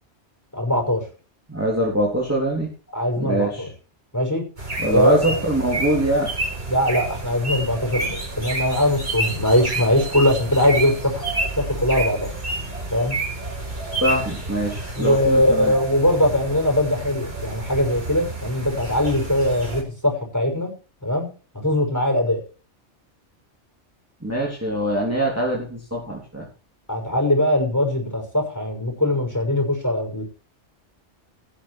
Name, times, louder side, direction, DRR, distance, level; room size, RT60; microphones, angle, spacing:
voice 1, 0.5-1.0 2.9-3.7 4.1-4.5 4.9-5.2 6.7-11.2 11.6-12.3 12.9-13.1 14.9-20.7 21.0-21.3 21.5-22.4 26.9-30.2, left 1 dB, 15° left, 3 dB, 5.9 m, -21 dB
voice 2, 1.5-2.7 3.2-3.6 4.8-6.3 14.0-15.7 24.2-26.5, right 1 dB, 10° right, -3 dB, 3.5 m, -23 dB
sound 1, 4.6-19.8, right 2 dB, 60° right, 5.0 m, -30 dB
18.0 x 7.3 x 4.9 m, 0.35 s
omnidirectional pair, 1.2 m